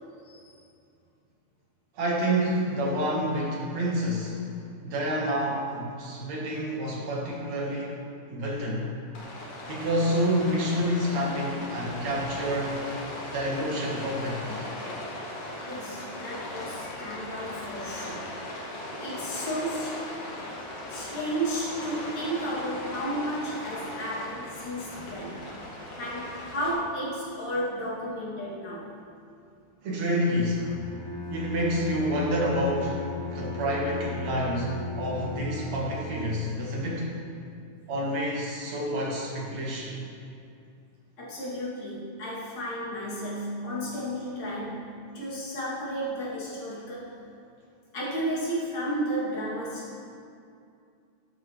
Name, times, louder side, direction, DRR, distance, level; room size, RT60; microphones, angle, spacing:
voice 1, 2.0-4.4 4.8-8.0 8.3-8.9 9.7-12.8 13.3-14.7 29.8-30.7 31.3-37.2 37.9-40.0, equal, 65° right, -3 dB, 2.8 m, -28 dB
Rain, 9.1-26.7, left 1 dB, 85° left, 3.5 m, -38 dB
voice 2, 15.6-18.4 19.0-20.1 20.9-25.5 25.7-28.9 41.2-47.2 47.9-50.0, equal, 60° left, -8 dB, 3.9 m, -33 dB
Bowed string instrument, 30.5-36.4, left 3 dB, 5° right, 2.5 m, -36 dB
13.5 x 11.5 x 3.3 m, 2.5 s
omnidirectional pair, 3.6 m